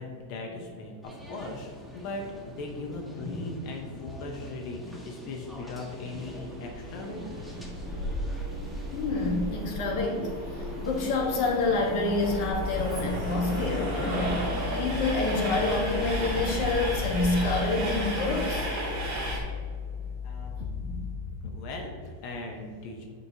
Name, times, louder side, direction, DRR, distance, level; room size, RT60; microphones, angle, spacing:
voice 1, 0.0-1.7 1.9-7.2 20.2-20.7 21.4-23.1, left 3 dB, 85° left, 1 dB, 1.7 m, -38 dB
sound 1, 1.0-18.8, equal, ahead, 0.8 m, -46 dB
Train, 5.9-19.4, right 1 dB, 65° right, 2.6 m, -34 dB
voice 2, 8.9-14.4 14.8-18.7 20.8-20.9, left 3 dB, 55° left, -1 dB, 1.8 m, -28 dB
sound 2, 12.0-21.2, left 7 dB, 25° left, 1.6 m, -37 dB
9.6 x 6.0 x 2.7 m, 2.1 s
omnidirectional pair, 2.3 m